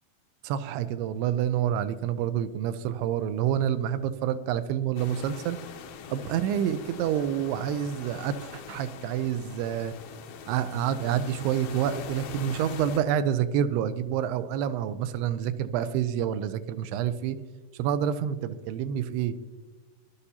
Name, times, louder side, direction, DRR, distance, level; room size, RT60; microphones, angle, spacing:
voice 1, 0.4-5.6 6.1-9.9 10.5-17.4 17.7-19.4, right 9 dB, 90° right, 11 dB, 2.7 m, -28 dB
sound 1, 5.0-13.0, left 6 dB, 80° left, 2.8 m, -43 dB
19.5 x 11.5 x 2.8 m, 1.3 s
omnidirectional pair, 4.6 m